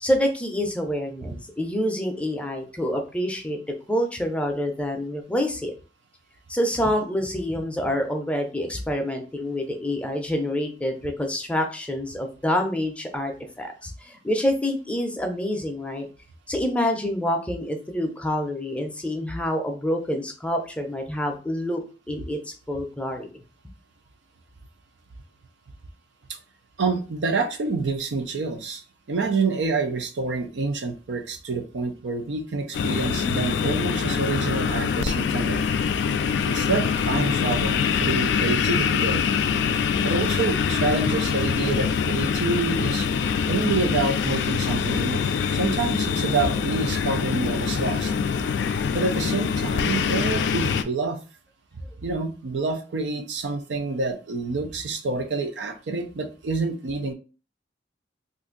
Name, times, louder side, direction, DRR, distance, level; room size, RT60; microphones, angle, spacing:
voice 1, 0.0-3.6 3.9-5.7 6.5-16.1 16.5-21.8 22.1-22.4 22.7-23.3, left 1 dB, 5° left, 3 dB, 0.5 m, -27 dB
voice 2, 26.8-35.6 36.5-39.2 40.0-43.1 43.5-48.1 48.9-51.2 52.0-57.1, right 3 dB, 90° right, 7 dB, 0.5 m, -27 dB
sound 1, 32.7-50.8, left 6 dB, 70° left, 0.3 m, -24 dB
2.6 x 2.5 x 3.7 m, 0.35 s
head